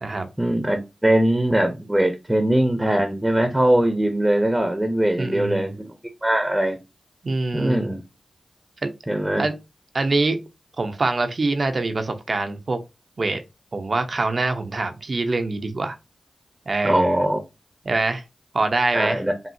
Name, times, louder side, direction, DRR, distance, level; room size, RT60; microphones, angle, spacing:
voice 1, 0.4-5.9 6.2-6.8 7.5-8.0 9.1-9.5 16.8-17.4 18.9-19.3, right 1 dB, 15° right, 0.9 m, -21 dB
voice 2, 5.2-5.7 7.2-7.9 8.8-8.9 9.4-9.5 9.9-10.4 10.8-12.8 13.2-13.4 13.7-16.0 16.7-17.2 17.8-18.2 18.5-19.2, right 3 dB, 55° right, 0.8 m, -24 dB
5.5 x 2.7 x 2.7 m
cardioid pair, 40°, 0 cm